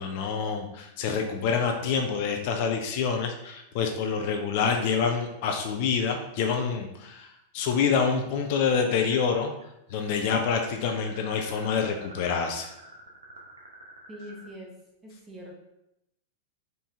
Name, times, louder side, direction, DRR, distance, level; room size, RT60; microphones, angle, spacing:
voice 1, 0.0-9.5 9.9-12.7, left 6 dB, 55° left, 4 dB, 0.5 m, -27 dB
sound 1, 9.0-9.6 9.9-14.5, right 2 dB, 80° right, 0.9 m, -48 dB
voice 2, 14.1-14.7 15.0-15.5, equal, 15° right, -1 dB, 1.2 m, -43 dB
4.3 x 2.7 x 3.6 m, 0.85 s
hypercardioid pair, 100°, 0 cm